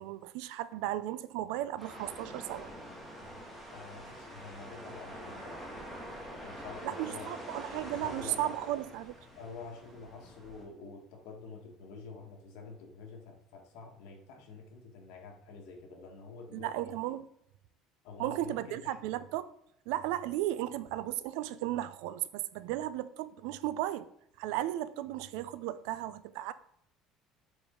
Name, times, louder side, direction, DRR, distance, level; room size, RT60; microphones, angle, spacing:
voice 1, 0.0-2.7 6.8-9.2 16.5-17.3 18.2-19.5 19.9-24.1 24.4-26.5, right 14 dB, 80° right, 0.4 m, -35 dB
sound 1, 1.8-10.6, equal, 5° right, 1.5 m, -45 dB
voice 2, 3.7-5.7 6.3-7.3 7.9-8.5 9.3-16.9 18.0-19.0, left 4 dB, 80° left, 1.6 m, -48 dB
7.3 x 4.9 x 3.8 m
cardioid pair, 180°, 0 cm